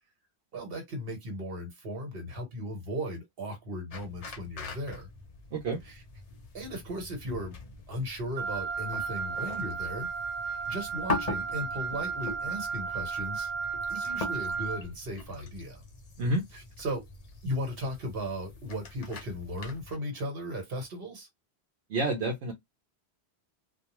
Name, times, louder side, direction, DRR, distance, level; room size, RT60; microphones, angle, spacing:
voice 1, 0.5-5.1 5.9-6.0 6.5-7.6 7.9-10.1 10.4-13.5 13.9-15.8 16.5-17.0 17.4-21.3, equal, 60° right, 1.3 m, -36 dB
sound 1, 3.9-20.0, left 3 dB, 40° left, 0.6 m, -42 dB
voice 2, 5.5-5.8 16.2-16.4 21.9-22.5, right 2 dB, 80° right, 0.9 m, -28 dB
Wind instrument woodwind instrument, 8.4-14.8, right 5 dB, 10° left, 1.0 m, -34 dB
2.3 x 2.2 x 2.9 m
omnidirectional pair, 1.1 m